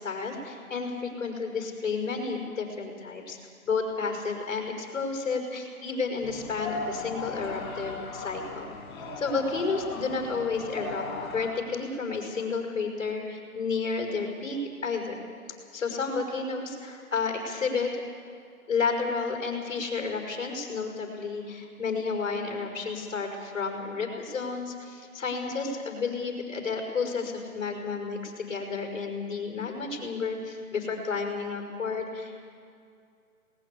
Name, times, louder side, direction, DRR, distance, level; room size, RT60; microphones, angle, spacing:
voice 1, 0.0-3.4 3.7-8.7 9.2-15.2 15.7-17.9 18.7-32.4, left 4 dB, 55° left, 1 dB, 5.4 m, -31 dB
sound 1, 6.2-11.5, left 3 dB, 30° left, 6.2 m, -37 dB
20.0 x 19.5 x 8.4 m, 2.3 s
hypercardioid pair, 165°, 45 cm